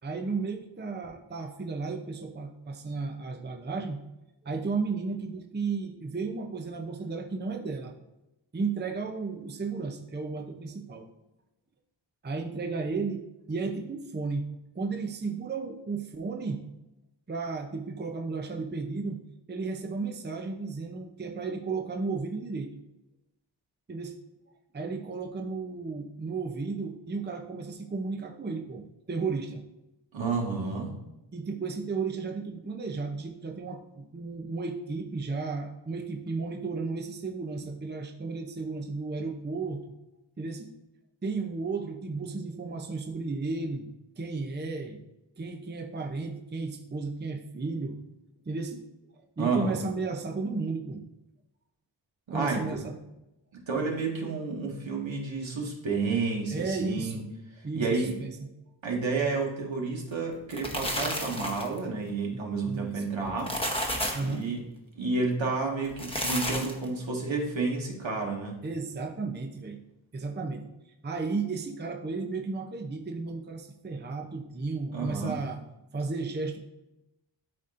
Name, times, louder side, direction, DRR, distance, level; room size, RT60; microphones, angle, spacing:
voice 1, 0.0-4.0 4.4-7.9 8.5-11.1 12.2-16.6 17.3-19.2 19.5-22.7 23.9-24.1 24.7-29.6 31.3-39.9 40.4-40.7 41.2-43.9 44.2-45.0 45.4-48.0 48.5-48.8 49.4-51.0 52.3-53.0 56.5-57.3 57.6-58.5 62.3-63.0 64.1-64.5 68.6-69.8 70.1-70.7 71.0-75.6 75.9-76.6, right 4 dB, 25° right, 4 dB, 0.6 m, -34 dB
voice 2, 30.1-30.9 49.4-49.8 52.3-52.6 53.7-57.2 57.7-58.1 58.8-63.5 64.2-64.6 65.0-68.6 74.9-75.4, right 4 dB, 75° right, -1 dB, 1.7 m, -30 dB
sound 1, 60.3-61.8 63.2-64.3 65.8-66.9, equal, 10° left, 0.9 m, -31 dB
12.0 x 4.1 x 2.5 m, 0.93 s
wide cardioid pair, 110°, 47 cm